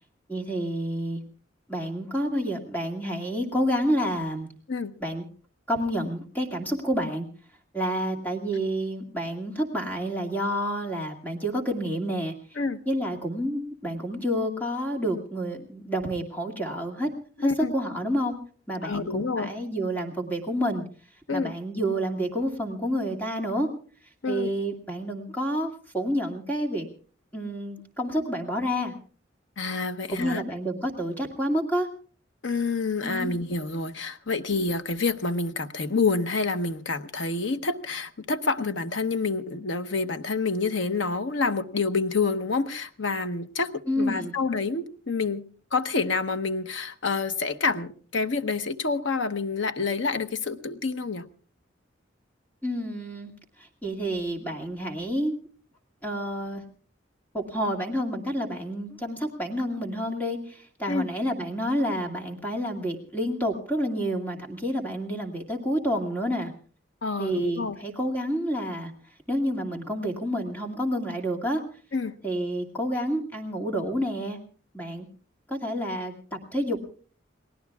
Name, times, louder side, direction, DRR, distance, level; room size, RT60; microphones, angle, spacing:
voice 1, 0.3-1.2 1.7-4.5 5.0-5.2 5.7-7.3 7.7-12.3 12.9-17.1 17.4-18.3 18.7-20.8 21.3-23.7 24.3-26.9 27.3-28.9 30.1-31.9 33.0-33.3 43.9-44.3 52.6-53.3 53.8-55.3 56.0-56.6 57.3-66.5 67.2-68.9 69.3-71.6 72.2-74.4 74.7-75.1 75.5-76.1 76.5-76.8, equal, 10° left, 1 dB, 2.2 m, -29 dB
voice 2, 17.4-17.7 18.8-19.5 21.3-21.6 24.2-24.5 29.6-30.4 32.4-51.3 60.9-61.1 67.0-67.8 71.9-72.1, left 4 dB, 80° left, 9 dB, 0.9 m, -28 dB
29.5 x 19.0 x 2.3 m, 0.42 s
head